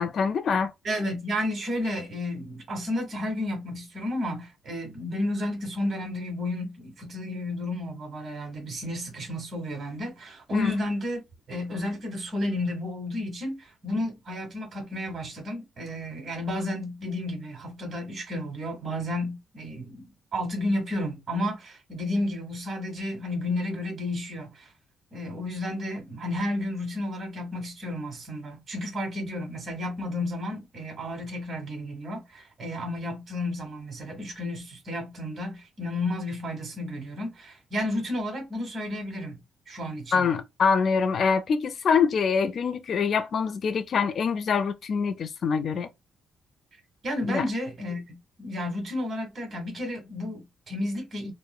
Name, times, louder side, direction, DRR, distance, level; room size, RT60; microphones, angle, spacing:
voice 1, 0.0-0.7 10.5-10.7 40.1-45.9 47.3-47.4, left 5 dB, 55° left, 0.4 m, -25 dB
voice 2, 0.8-11.2 11.5-24.7 25.1-39.4 39.7-40.3 47.0-51.3, left 1 dB, 45° right, 1.3 m, -32 dB
3.0 x 2.1 x 2.3 m
cardioid pair, 90°, 0 cm